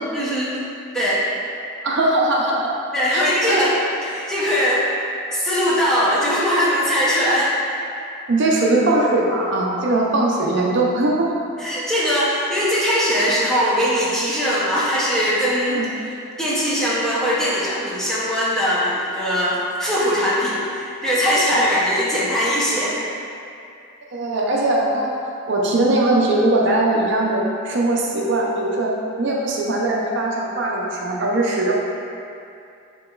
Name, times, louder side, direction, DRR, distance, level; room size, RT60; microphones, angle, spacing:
voice 1, 0.1-0.6 0.9-1.2 2.9-3.7 4.0-4.8 5.3-7.5 11.6-15.8 16.4-23.0, equal, ahead, -9 dB, 0.6 m, -20 dB
voice 2, 1.8-2.7 3.1-3.2 3.5-3.6 8.3-11.3 15.7-15.9 21.5-21.7 24.1-25.2 25.5-28.9 29.2-31.7, right 2 dB, 55° right, -2 dB, 0.5 m, -20 dB
6.8 x 2.9 x 2.3 m, 2.6 s
head